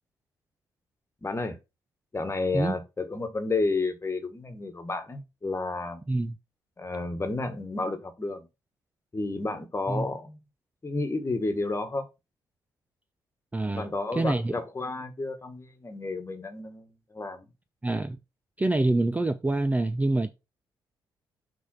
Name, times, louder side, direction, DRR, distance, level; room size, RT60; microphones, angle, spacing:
voice 1, 1.2-1.6 2.1-6.0 6.8-8.5 9.1-10.4 10.8-12.1 13.7-17.5, left 3 dB, 25° left, 1.6 m, -31 dB
voice 2, 13.5-13.9 14.1-14.5 17.8-18.2 18.6-20.3, right 2 dB, 15° right, 0.6 m, -26 dB
6.2 x 3.5 x 5.7 m
figure-of-eight pair, 40°, 11 cm